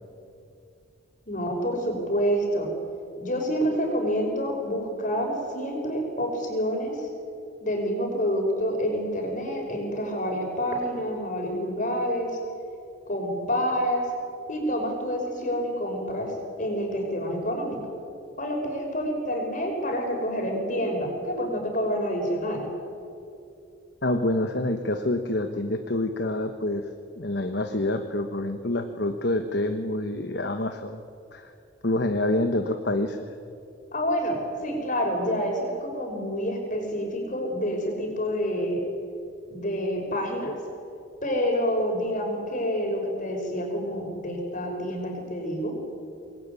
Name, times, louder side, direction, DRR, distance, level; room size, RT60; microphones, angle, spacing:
voice 1, 1.3-2.7 3.2-7.1 7.6-12.4 13.1-14.1 14.5-16.3 16.6-17.8 18.4-22.6 33.9-38.8 39.5-40.5 41.2-45.8, equal, 40° left, 2 dB, 5.9 m, -28 dB
voice 2, 24.0-26.9 27.2-31.0 31.3-31.5 31.8-33.3, left 1 dB, 55° left, 7 dB, 1.3 m, -27 dB
25.5 x 21.0 x 9.8 m, 2.6 s
head